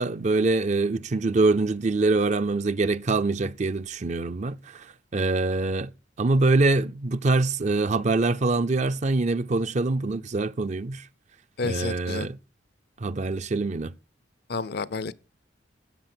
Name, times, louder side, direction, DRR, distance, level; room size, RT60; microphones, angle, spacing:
voice 1, 0.0-4.9 5.1-5.9 6.2-11.1 11.6-12.4 13.0-13.9, right 3 dB, 40° right, 0.5 m, -24 dB
voice 2, 11.6-12.3 14.5-15.1, left 4 dB, 55° left, 0.6 m, -30 dB
13.5 x 8.1 x 4.4 m
head